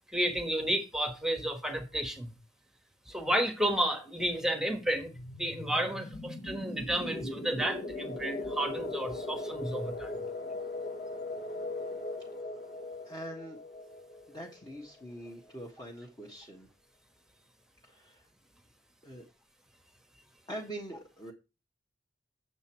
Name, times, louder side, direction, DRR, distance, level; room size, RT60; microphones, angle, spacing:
voice 1, 0.1-2.4 3.1-5.1 5.4-10.1, right 1 dB, 5° right, 1.3 m, -31 dB
sound 1, 4.9-15.4, left 2 dB, 50° left, 1.3 m, -39 dB
voice 2, 13.0-13.6 14.3-16.7 17.8-18.3 19.0-19.3 20.5-21.3, equal, 20° left, 1.4 m, -43 dB
8.1 x 6.9 x 4.4 m
head